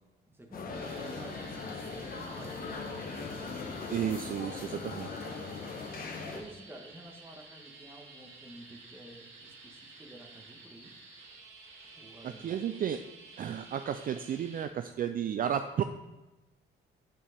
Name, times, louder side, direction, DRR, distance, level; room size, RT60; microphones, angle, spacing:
voice 1, 0.3-3.7 4.7-10.9 12.0-12.6, right 1 dB, 10° right, 2 dB, 1.4 m, -52 dB
sound 1, 0.5-6.4, left 4 dB, 50° left, 1.1 m, -39 dB
sound 2, 0.7-14.7, right 3 dB, 85° right, 1.7 m, -52 dB
voice 2, 3.9-5.1 12.4-13.0 13.4-15.8, right 9 dB, 45° right, 9 dB, 0.4 m, -32 dB
7.3 x 4.6 x 5.1 m, 1.1 s
cardioid pair, 90°, 20 cm